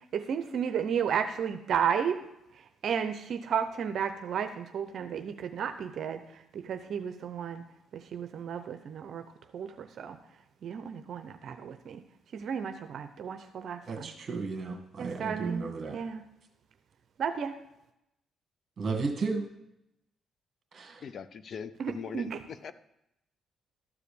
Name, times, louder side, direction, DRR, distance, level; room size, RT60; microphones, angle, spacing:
voice 1, 0.1-2.2 2.8-7.6 7.9-9.2 9.5-10.2 10.6-12.0 12.3-14.1 15.0-15.7 15.9-16.2 17.2-17.5 21.8-22.4, right 7 dB, 65° right, 8 dB, 0.7 m, -33 dB
voice 2, 13.9-16.0 18.8-19.5 20.7-21.0, right 4 dB, 45° right, 3 dB, 2.1 m, -33 dB
voice 3, 21.0-22.7, left 6 dB, 55° left, 14 dB, 0.5 m, -41 dB
13.0 x 4.9 x 6.8 m, 0.85 s
cardioid pair, 90°, 0 cm